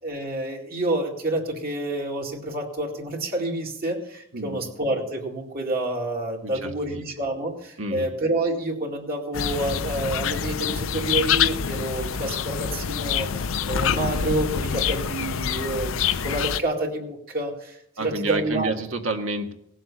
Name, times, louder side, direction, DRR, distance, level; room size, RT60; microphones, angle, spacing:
voice 1, 0.0-18.7, right 1 dB, 45° right, -1 dB, 2.3 m, -28 dB
voice 2, 6.4-7.1 7.8-8.1 18.0-19.5, right 2 dB, 75° right, 4 dB, 1.8 m, -29 dB
sound 1, 9.3-16.6, left 7 dB, 75° left, 0.6 m, -26 dB
18.0 x 7.6 x 7.1 m, 0.73 s
head